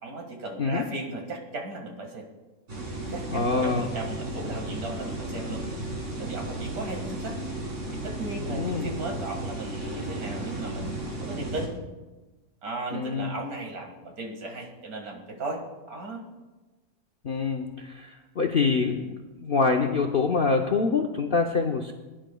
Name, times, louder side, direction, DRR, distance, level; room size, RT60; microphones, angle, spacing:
voice 1, 0.0-2.3 3.1-5.6 6.2-7.4 7.9-10.9 11.2-11.7 12.6-15.6 15.9-16.2, right 2 dB, 65° right, 1 dB, 2.3 m, -36 dB
sound 1, 2.7-11.7, right 2 dB, 45° right, 2.7 m, -34 dB
voice 2, 3.3-3.9 8.5-8.9 12.9-13.3 17.2-21.9, left 4 dB, 55° left, 2 dB, 0.6 m, -25 dB
20.5 x 10.0 x 2.3 m, 1.2 s
omnidirectional pair, 1.7 m